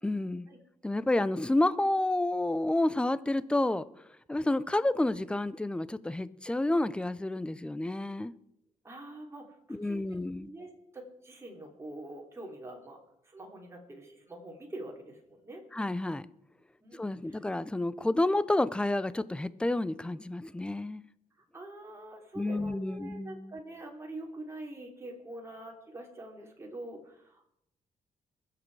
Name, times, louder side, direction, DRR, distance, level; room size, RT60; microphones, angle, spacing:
voice 1, 0.0-0.5 0.8-3.9 4.3-8.3 9.7-10.5 15.7-16.3 16.9-21.0 22.4-23.6, left 2 dB, 10° left, 17 dB, 0.5 m, -30 dB
voice 2, 8.8-13.0 13.2-15.6 16.8-17.4 21.5-27.4, right 1 dB, 20° right, 0 dB, 3.1 m, -45 dB
22.5 x 7.7 x 4.7 m, 0.78 s
cardioid pair, 110°, 13 cm